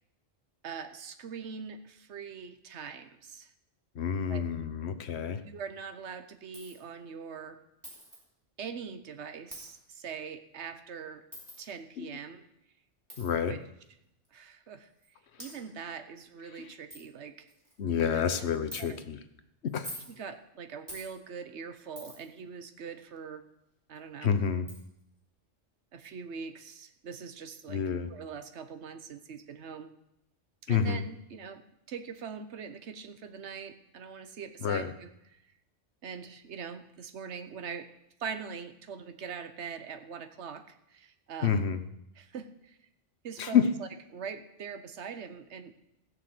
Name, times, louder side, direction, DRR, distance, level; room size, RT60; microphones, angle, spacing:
voice 1, 0.6-3.5 4.3-4.4 5.4-7.6 8.6-11.2 11.6-12.4 13.4-13.6 14.3-14.9 15.4-17.5 18.1-18.2 18.6-19.0 20.1-23.4 23.9-24.3 25.9-27.8 28.1-29.9 30.7-31.6 31.9-35.4 36.0-37.9 38.2-41.6 42.2-42.8 43.2-45.7, right 6 dB, 65° right, 10 dB, 1.3 m, -42 dB
voice 2, 3.9-5.4 12.0-12.1 13.2-13.6 16.6-16.7 17.8-19.2 19.6-19.9 24.2-24.7 27.7-28.1 30.7-31.1 34.6-34.9 41.4-41.8 43.4-43.7, left 7 dB, 60° left, 10 dB, 1.2 m, -28 dB
Coin (dropping), 6.5-6.8 7.8-8.2 9.5-9.7 11.3-11.6 13.1-13.3 14.2-14.3 15.0-15.1 15.4-15.5 16.2-16.3 16.5-16.6 16.9-17.0 17.5-17.8 18.7-18.8 19.7-20.1 20.9-21.1 22.0-22.3 24.0-24.1 24.7-24.8, equal, 15° right, 4.5 m, -44 dB
16.0 x 6.8 x 7.7 m, 0.83 s
omnidirectional pair, 1.3 m